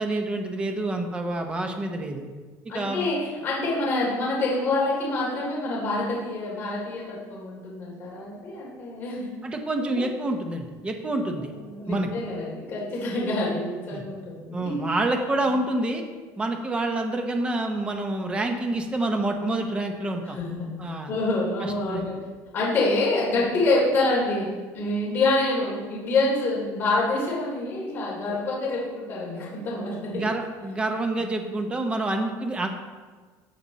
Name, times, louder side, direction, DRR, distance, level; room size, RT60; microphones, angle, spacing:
voice 1, 0.0-2.3 2.7-3.1 9.4-11.5 11.9-12.1 13.9-14.0 14.5-16.0 16.4-20.4 20.8-21.1 21.6-22.0 30.1-32.7, right 2 dB, 15° right, 4 dB, 0.9 m, -27 dB
voice 2, 2.7-9.3 9.8-10.0 11.4-14.9 20.2-20.7 21.1-22.2 22.5-24.5 24.7-30.3, left 2 dB, 30° left, -6 dB, 3.2 m, -26 dB
14.5 x 7.1 x 4.2 m, 1.4 s
cardioid pair, 165°, 7 cm